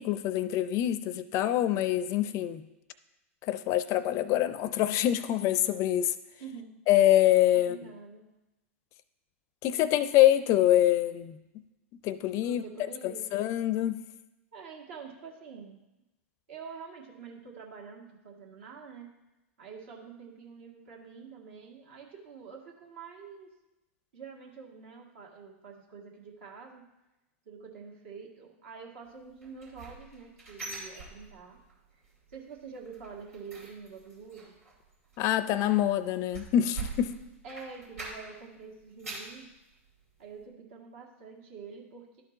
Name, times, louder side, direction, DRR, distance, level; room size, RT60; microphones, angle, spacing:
voice 1, 0.0-2.6 3.4-6.1 6.9-7.9 9.6-11.4 12.0-12.6 13.0-14.0 35.2-37.1, left 12 dB, 40° left, 14 dB, 0.5 m, -25 dB
voice 2, 6.4-6.7 7.5-8.3 12.4-13.3 14.5-15.8 16.5-19.1 19.6-23.5 24.1-26.9 27.5-31.6 31.9-32.0 32.3-34.6 37.4-39.5 40.2-42.2, right 5 dB, 65° right, 0 dB, 1.8 m, -46 dB
sound 1, 29.4-31.7 32.0-32.4 32.7-38.5 38.8-39.4 39.9-40.0 40.4-40.5, right 4 dB, 90° right, 2.6 m, -44 dB
12.0 x 4.3 x 3.9 m, 0.97 s
hypercardioid pair, 105°, 8 cm